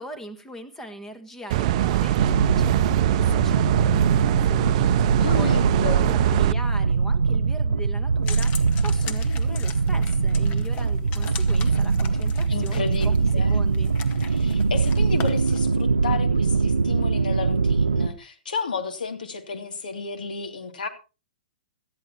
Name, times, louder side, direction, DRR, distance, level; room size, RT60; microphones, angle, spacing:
voice 1, 0.0-4.9 5.3-13.9, right 1 dB, 10° left, 7 dB, 1.7 m, -40 dB
sound 1, 1.5-6.5, right 14 dB, 45° right, 0.6 m, -22 dB
sound 2, 2.2-18.1, right 4 dB, 85° right, 0.7 m, -22 dB
voice 2, 5.2-6.1 12.5-13.1 13.3-13.6 14.3-20.9, left 5 dB, 75° left, 6 dB, 2.6 m, -32 dB
sound 3, 8.2-15.7, left 6 dB, 30° left, 1.6 m, -39 dB
18.0 x 13.0 x 2.9 m, 0.31 s
hypercardioid pair, 120°, 5 cm